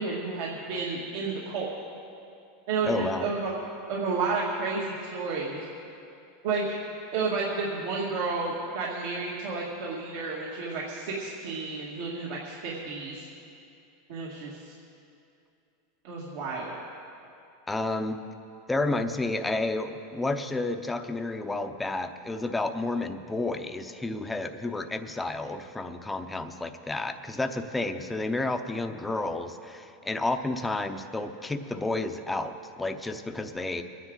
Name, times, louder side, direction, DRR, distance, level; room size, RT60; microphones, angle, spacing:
voice 1, 0.0-1.7 2.7-3.5 3.9-5.6 6.4-6.8 7.1-13.3 14.1-14.7 16.0-16.7, right 4 dB, 70° right, -5 dB, 2.1 m, -31 dB
voice 2, 2.8-3.3 17.7-18.2 18.7-33.8, left 2 dB, 10° left, 7 dB, 0.7 m, -31 dB
22.5 x 9.9 x 4.0 m, 2.6 s
supercardioid pair, 125°, 0 cm